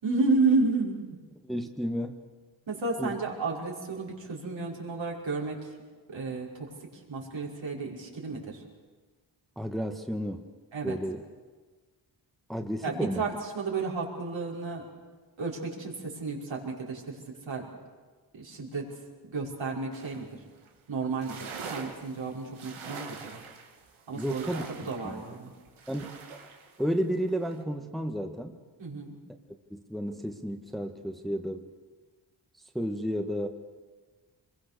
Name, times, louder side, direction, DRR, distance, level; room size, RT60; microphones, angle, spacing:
voice 1, 0.0-1.0 2.7-5.6 6.1-6.7 7.1-8.6 10.7-11.0 12.8-13.3 13.5-14.8 15.4-17.2 17.5-17.7 18.3-18.9 19.3-20.3 20.9-23.4 24.1-25.5 28.8-29.2, right 3 dB, 65° right, -2 dB, 5.4 m, -31 dB
voice 2, 1.4-2.2 3.0-3.1 9.6-10.5 10.8-11.2 12.5-13.2 24.2-25.2 25.9-26.2 26.8-28.6 29.7-31.7 32.7-33.5, equal, ahead, 5 dB, 1.6 m, -32 dB
sound 1, 19.9-20.3 20.6-20.7 21.0-26.8 27.3-27.6, right 5 dB, 85° right, 2.5 m, -44 dB
25.5 x 22.0 x 6.8 m, 1.4 s
cardioid pair, 65°, 48 cm